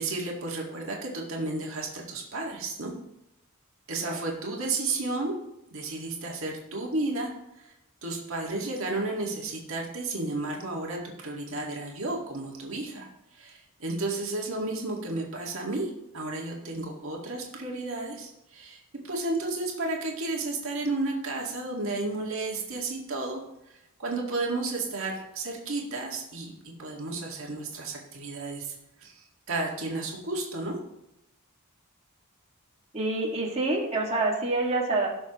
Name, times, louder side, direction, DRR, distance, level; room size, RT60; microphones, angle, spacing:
voice 1, 0.0-2.9 3.9-5.3 5.7-7.3 7.6-7.7 8.0-13.1 13.3-23.4 23.7-26.5 26.8-30.8, right 2 dB, 65° right, -1 dB, 1.9 m, -32 dB
voice 2, 32.9-35.1, right 2 dB, 30° right, -3 dB, 1.9 m, -27 dB
17.5 x 6.3 x 3.0 m, 0.87 s
head